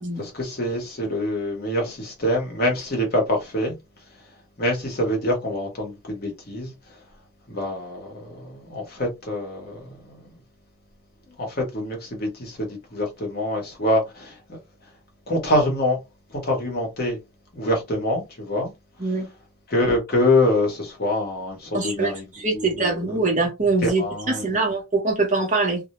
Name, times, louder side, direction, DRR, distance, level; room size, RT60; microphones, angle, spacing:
voice 1, 0.2-3.8 4.6-6.7 7.5-10.2 11.4-14.6 15.3-16.0 16.4-17.2 17.5-18.7 19.7-22.9 23.8-24.6, left 1 dB, 45° left, 0.9 m, -25 dB
voice 2, 21.7-25.8, right 3 dB, 35° right, 0.8 m, -23 dB
2.1 x 2.1 x 2.8 m
head